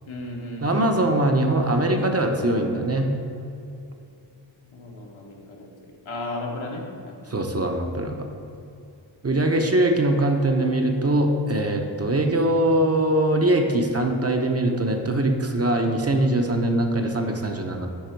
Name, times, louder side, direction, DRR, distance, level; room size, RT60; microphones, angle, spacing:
voice 1, 0.1-1.1 4.7-7.2, left 2 dB, 80° left, 0 dB, 1.3 m, -35 dB
voice 2, 0.6-3.1 7.3-8.3 9.2-17.9, right 1 dB, 30° right, 3 dB, 0.7 m, -22 dB
10.0 x 3.7 x 4.5 m, 2.7 s
wide cardioid pair, 100°, 47 cm